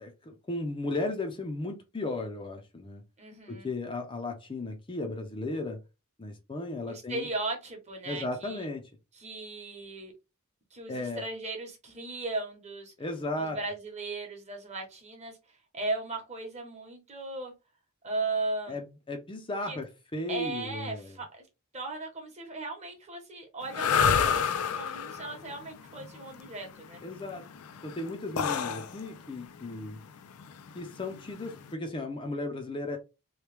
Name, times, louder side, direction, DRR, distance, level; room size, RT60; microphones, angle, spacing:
voice 1, 0.0-3.0 3.5-5.8 6.2-7.3 8.0-8.9 10.9-11.3 13.0-13.6 18.7-21.2 27.0-27.4 27.8-30.0 30.8-33.0, left 2 dB, 25° left, 0.5 m, -35 dB
voice 2, 3.2-3.7 6.8-8.7 9.2-10.1 10.7-12.9 13.4-15.4 15.7-17.5 18.0-18.8 19.7-19.8 20.3-21.4 21.7-27.0, right 2 dB, 30° right, 1.0 m, -37 dB
sound 1, 23.7-31.7, left 7 dB, 85° left, 0.4 m, -30 dB
3.0 x 2.2 x 3.2 m
head